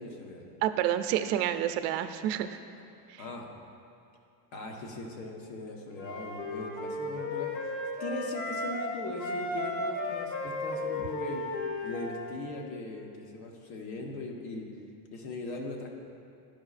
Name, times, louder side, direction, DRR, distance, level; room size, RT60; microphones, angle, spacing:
voice 1, 0.0-0.5 3.2-3.6 4.5-7.7 8.0-11.5 11.8-14.6 15.1-15.9, left 2 dB, 85° left, 1 dB, 1.2 m, -39 dB
voice 2, 0.6-2.6 3.1-3.2, right 11 dB, 75° right, 9 dB, 0.5 m, -29 dB
Wind instrument woodwind instrument, 6.0-8.9 9.2-12.3, left 2 dB, 50° left, 0.9 m, -34 dB
11.0 x 5.1 x 2.4 m, 2.5 s
cardioid pair, 175°, 49 cm